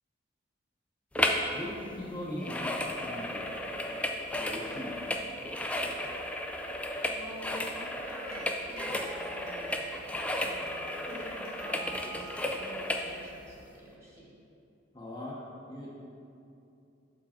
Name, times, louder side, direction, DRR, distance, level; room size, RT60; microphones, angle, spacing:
sound 1, 1.1-1.5 1.8-13.1 13.6-13.7, left 1 dB, 5° left, 0.3 m, -34 dB
voice 1, 1.5-3.5 4.3-4.9 14.9-15.4 15.7-15.9, left 1 dB, 25° left, -6 dB, 0.8 m, -39 dB
voice 2, 7.1-14.3, equal, 15° right, -5 dB, 1.3 m, -48 dB
sound 2, 8.0-13.0, right 4 dB, 90° right, 1.2 m, -48 dB
6.5 x 4.7 x 4.3 m, 2.6 s
head